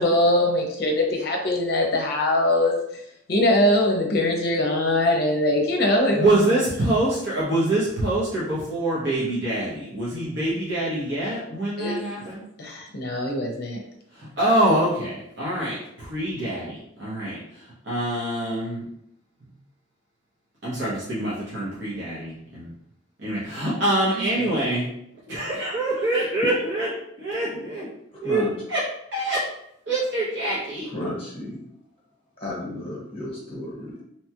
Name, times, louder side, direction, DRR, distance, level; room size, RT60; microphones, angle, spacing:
voice 1, 0.0-2.8 3.3-6.6 11.8-12.0 12.6-13.8 24.1-24.4, left 1 dB, 55° left, 1 dB, 0.6 m, -22 dB
voice 2, 6.1-12.4 14.4-17.4 17.9-18.8 20.6-22.7 23.2-24.8 25.3-26.9 27.2-27.9 28.2-28.4 28.7-28.8 29.1-29.4 29.9-30.9, right 1 dB, 65° right, -8 dB, 0.9 m, -25 dB
voice 3, 30.8-31.6 32.4-34.0, left 1 dB, 30° left, -5 dB, 1.0 m, -32 dB
2.8 x 2.3 x 2.8 m, 0.74 s
head